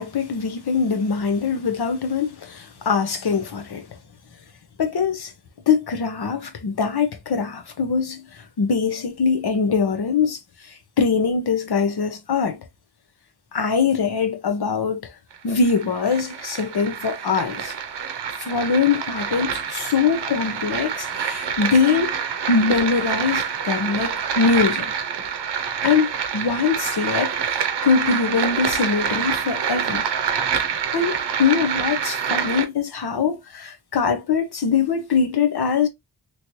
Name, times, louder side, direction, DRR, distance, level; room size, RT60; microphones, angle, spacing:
voice 1, 0.0-4.0 4.8-5.3 5.7-12.6 13.5-15.1 15.4-17.7 18.4-22.2 22.5-24.9 25.8-30.0 30.9-35.9, left 5 dB, 65° left, 0.9 m, -22 dB
sound 1, 15.3-32.7, right 7 dB, 80° right, 0.7 m, -26 dB
3.1 x 3.0 x 2.6 m
wide cardioid pair, 140°, 40 cm